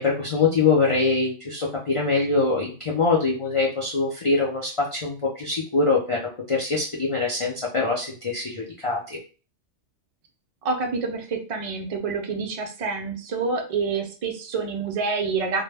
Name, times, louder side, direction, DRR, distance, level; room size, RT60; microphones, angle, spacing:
voice 1, 0.0-6.2 6.5-9.2, left 3 dB, 55° left, -3 dB, 0.3 m, -23 dB
voice 2, 10.6-15.6, right 4 dB, 70° right, 3 dB, 0.3 m, -27 dB
2.1 x 2.0 x 3.2 m, 0.36 s
omnidirectional pair, 1.3 m